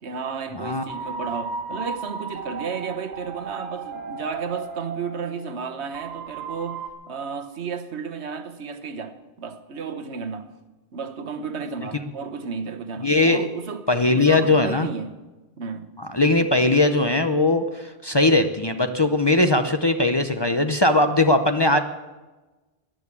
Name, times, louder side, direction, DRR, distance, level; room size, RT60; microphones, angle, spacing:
voice 1, 0.0-10.5 10.9-13.9 14.1-15.2 15.6-15.9, right 5 dB, 80° right, 1.3 m, -33 dB
sound 1, 0.6-6.9, right 4 dB, 40° right, 1.9 m, -35 dB
voice 2, 13.0-13.5 13.9-14.9 16.1-21.8, left 2 dB, 30° left, 0.6 m, -19 dB
14.5 x 10.5 x 8.2 m
omnidirectional pair, 1.1 m